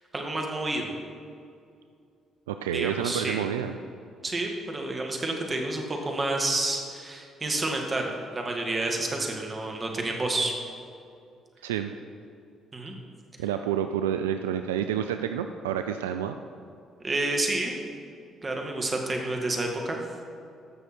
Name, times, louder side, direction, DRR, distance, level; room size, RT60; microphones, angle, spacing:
voice 1, 0.1-0.9 2.7-3.4 4.2-10.5 12.7-12.9 17.0-17.7 18.4-20.0, right 2 dB, 30° right, 2 dB, 2.0 m, -29 dB
voice 2, 2.5-3.8 11.6-11.9 13.4-16.4, right 9 dB, 85° right, 8 dB, 0.3 m, -29 dB
14.0 x 6.4 x 4.5 m, 2.4 s
hypercardioid pair, 50°, 0 cm